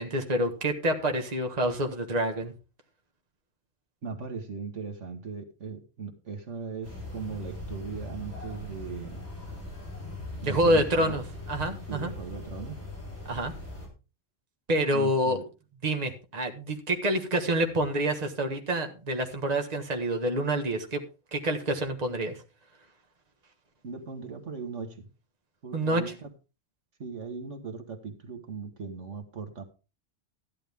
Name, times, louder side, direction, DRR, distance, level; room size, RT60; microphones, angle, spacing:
voice 1, 0.0-2.5 10.4-11.2 11.5-12.1 13.2-13.5 14.7-15.4 15.8-21.0 21.3-22.3 25.7-26.0, right 1 dB, 35° right, 5 dB, 1.5 m, -27 dB
voice 2, 4.0-9.2 10.4-11.2 11.9-12.8 14.9-15.5 23.8-25.1 25.6-26.3 27.0-29.6, right 5 dB, 70° right, 6 dB, 1.9 m, -38 dB
sound 1, 6.8-13.9, left 2 dB, 10° left, 6.0 m, -40 dB
13.5 x 10.0 x 3.6 m, 0.31 s
omnidirectional pair, 1.3 m